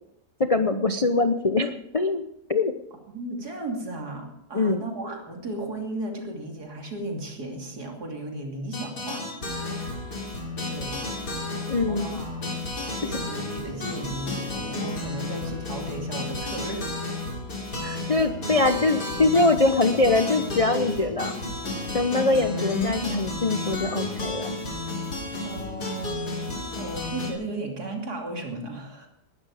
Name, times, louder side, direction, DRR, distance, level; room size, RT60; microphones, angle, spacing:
voice 1, 0.4-2.2 2.5-2.7 4.5-4.8 11.7-12.2 18.1-21.3 21.9-24.5, left 3 dB, 40° left, 7 dB, 0.5 m, -23 dB
voice 2, 3.1-9.9 10.7-11.0 11.5-12.6 13.0-16.9 17.8-18.0 25.4-29.1, right 2 dB, 70° right, 2 dB, 3.4 m, -35 dB
sound 1, 8.7-27.3, left 2 dB, 80° left, 4.0 m, -32 dB
20.0 x 12.5 x 4.9 m, 0.79 s
omnidirectional pair, 1.8 m